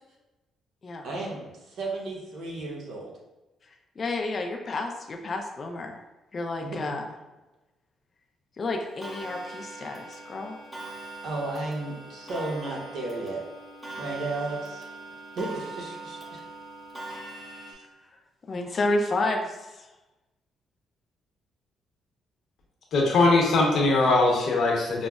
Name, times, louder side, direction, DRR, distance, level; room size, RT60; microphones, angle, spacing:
voice 1, 1.0-1.4 1.7-3.1 6.6-6.9 11.2-13.4 14.0-14.9 15.4-16.4 17.7-17.8, right 2 dB, 70° right, -2 dB, 0.8 m, -33 dB
voice 2, 3.7-6.0 6.3-7.1 8.6-10.6 18.5-19.9, left 2 dB, 40° left, 2 dB, 0.4 m, -30 dB
Clock, 9.0-17.7, right 2 dB, 10° right, 0.7 m, -41 dB
voice 3, 22.9-25.1, left 2 dB, 65° left, -1 dB, 0.8 m, -21 dB
5.1 x 2.0 x 2.3 m, 1.1 s
cardioid pair, 90°, 0 cm